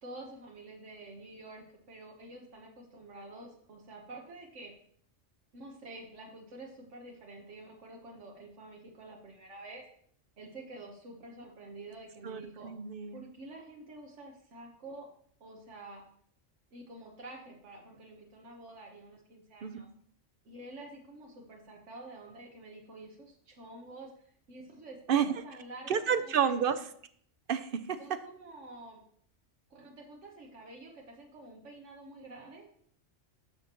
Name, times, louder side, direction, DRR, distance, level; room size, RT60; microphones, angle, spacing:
voice 1, 0.0-4.7 5.5-9.8 10.4-12.7 13.1-15.1 15.4-16.0 16.7-19.9 20.4-26.5 28.0-29.0 29.7-32.7, right 2 dB, 85° right, 0 dB, 1.5 m, -48 dB
voice 2, 12.2-13.2 19.6-19.8 25.1-25.4 25.9-26.8 27.5-28.0, right 7 dB, 60° right, 11 dB, 0.7 m, -30 dB
12.0 x 6.8 x 3.0 m, 0.62 s
omnidirectional pair, 1.2 m